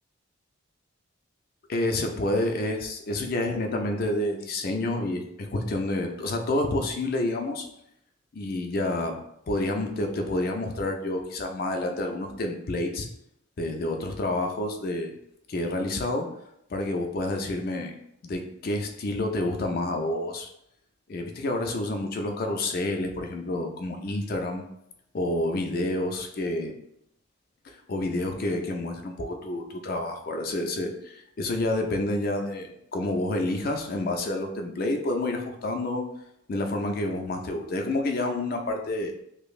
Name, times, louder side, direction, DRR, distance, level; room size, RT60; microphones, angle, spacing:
voice 1, 1.7-7.7 8.3-9.2 9.5-13.1 13.6-15.1 15.5-16.3 16.7-17.9 18.2-20.5 21.1-24.7 25.1-26.7 27.6-36.1 36.5-39.1, left 1 dB, 45° left, 3 dB, 0.4 m, -29 dB
5.0 x 2.0 x 2.4 m, 0.77 s
head